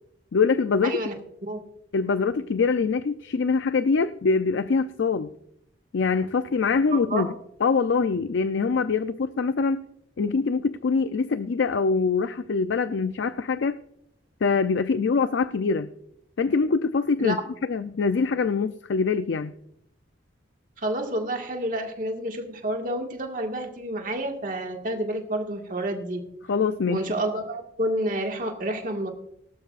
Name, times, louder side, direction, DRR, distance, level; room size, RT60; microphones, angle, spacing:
voice 1, 0.3-1.0 1.9-5.3 5.9-7.3 7.6-9.8 10.2-13.8 14.4-15.9 16.4-19.5 26.5-27.0, left 4 dB, 70° left, 12 dB, 0.4 m, -24 dB
voice 2, 0.8-1.1 1.4-1.6 6.9-7.3 17.2-17.4 20.8-26.2 26.9-29.1, right 1 dB, 45° right, 3 dB, 1.7 m, -29 dB
18.5 x 12.0 x 2.5 m, 0.76 s
head